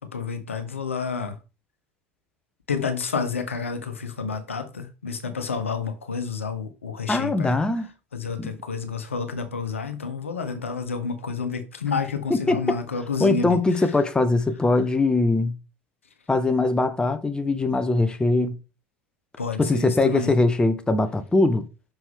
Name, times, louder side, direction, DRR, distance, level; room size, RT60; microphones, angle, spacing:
voice 1, 0.1-1.4 2.7-7.6 8.1-13.6 19.4-20.3, left 5 dB, 85° left, 0.9 m, -29 dB
voice 2, 7.1-7.9 8.4-8.6 12.3-12.8 13.2-15.5 16.3-18.6 19.6-21.6, left 2 dB, 10° left, 1.0 m, -21 dB
6.3 x 5.7 x 3.5 m
figure-of-eight pair, 70°, 7 cm